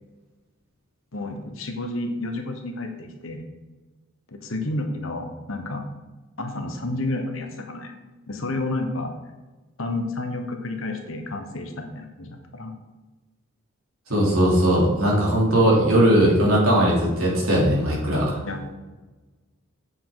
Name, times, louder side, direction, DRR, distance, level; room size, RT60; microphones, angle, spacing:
voice 1, 1.1-3.5 4.3-5.8 6.4-7.9 8.3-9.1 9.8-12.7 18.4-18.7, left 2 dB, 65° left, 4 dB, 1.2 m, -30 dB
voice 2, 14.1-18.4, right 1 dB, 80° right, -4 dB, 3.2 m, -19 dB
8.4 x 7.2 x 3.9 m, 1.2 s
head